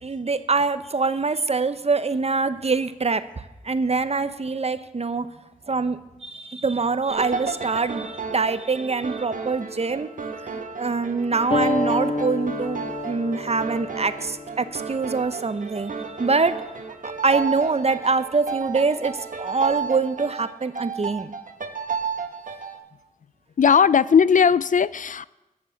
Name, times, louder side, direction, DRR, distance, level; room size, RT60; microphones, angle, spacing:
voice 1, 0.0-5.3 5.7-15.9 16.2-16.6 17.0-21.3, right 4 dB, 45° right, 0.8 m, -24 dB
sound 1, 7.1-22.8, right 5 dB, 65° right, 1.5 m, -33 dB
sound 2, 11.5-16.6, left 2 dB, 40° left, 1.7 m, -30 dB
voice 2, 23.6-25.3, left 6 dB, 60° left, 0.5 m, -17 dB
14.5 x 7.5 x 7.1 m
cardioid pair, 40°, 15 cm